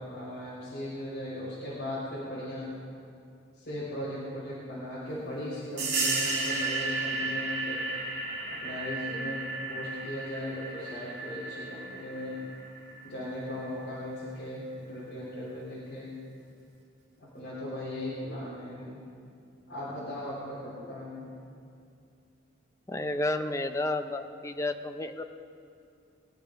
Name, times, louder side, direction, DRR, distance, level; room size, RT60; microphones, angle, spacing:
voice 1, 0.0-2.7 3.5-7.8 8.6-9.4 9.7-12.4 13.0-16.1 17.2-19.0 19.7-21.3, left 1 dB, 60° left, -9 dB, 3.6 m, -38 dB
sound 1, 5.8-14.1, right 3 dB, 60° right, 2.6 m, -34 dB
voice 2, 22.9-25.2, left 2 dB, 15° left, 7 dB, 0.5 m, -31 dB
21.0 x 9.8 x 5.1 m, 2.5 s
head